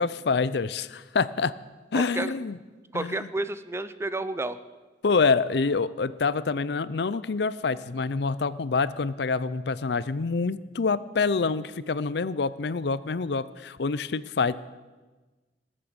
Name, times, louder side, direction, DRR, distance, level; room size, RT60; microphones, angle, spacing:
voice 1, 0.0-1.5 1.9-2.6 2.9-3.2 5.0-14.6, left 4 dB, 65° left, 17 dB, 0.5 m, -26 dB
voice 2, 1.9-2.3 2.9-4.6, right 2 dB, 15° right, 13 dB, 0.5 m, -31 dB
20.0 x 8.6 x 7.2 m, 1.3 s
head